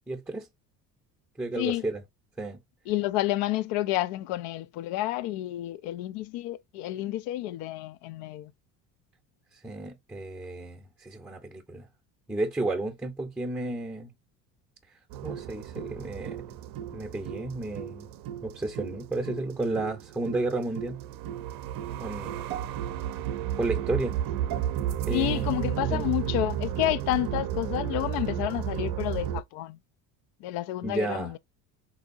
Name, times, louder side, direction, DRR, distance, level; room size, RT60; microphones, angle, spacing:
voice 1, 0.1-0.5 1.4-2.0 2.4-2.6 9.5-11.9 12.3-14.1 15.2-16.4 16.9-18.1 18.4-21.0 22.0-22.4 23.6-24.2 25.1-25.5 25.9-26.1 30.8-31.3, right 2 dB, 5° right, 0.7 m, -32 dB
voice 2, 1.6-1.9 2.9-8.5 25.1-29.8 30.4-31.4, left 15 dB, 55° left, 0.5 m, -30 dB
sound 1, 15.1-29.4, right 11 dB, 45° right, 0.6 m, -33 dB
3.6 x 2.7 x 2.5 m
hypercardioid pair, 65°, 50 cm